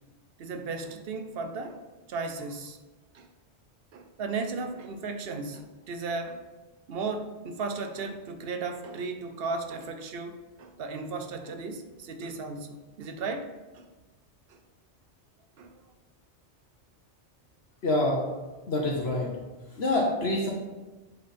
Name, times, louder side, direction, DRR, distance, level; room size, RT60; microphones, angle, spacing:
voice 1, 0.4-1.8 2.1-2.8 3.1-3.3 3.9-6.4 6.9-13.5 13.7-13.9 14.5-14.6 15.6-15.8, right 4 dB, 60° right, 7 dB, 0.9 m, -35 dB
voice 2, 17.8-18.3 18.7-19.4 19.7-20.5, left 1 dB, 65° left, -1 dB, 1.2 m, -26 dB
7.9 x 4.1 x 4.2 m, 1.2 s
omnidirectional pair, 1.2 m